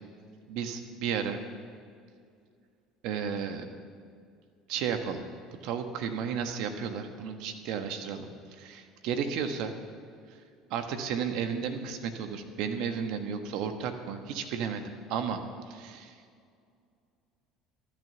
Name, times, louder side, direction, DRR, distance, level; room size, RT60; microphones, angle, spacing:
voice 1, 0.5-1.4 3.0-3.6 4.7-5.2 5.6-8.3 8.5-9.7 10.7-14.8 15.1-15.4 15.7-16.1, right 7 dB, 65° right, 6 dB, 1.4 m, -33 dB
13.5 x 10.0 x 6.9 m, 2.2 s
hypercardioid pair, 70°, 0 cm